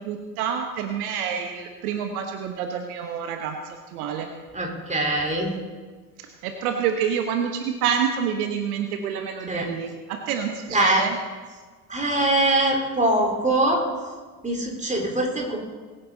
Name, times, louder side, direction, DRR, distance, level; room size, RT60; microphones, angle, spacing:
voice 1, 0.0-4.3 6.2-11.2, right 7 dB, 70° right, 5 dB, 1.3 m, -28 dB
voice 2, 4.5-5.5 9.5-9.7 10.7-11.0 11.9-13.8 14.4-15.6, right 1 dB, 15° right, 0 dB, 4.3 m, -22 dB
22.0 x 9.6 x 4.1 m, 1.4 s
figure-of-eight pair, 60°, 46 cm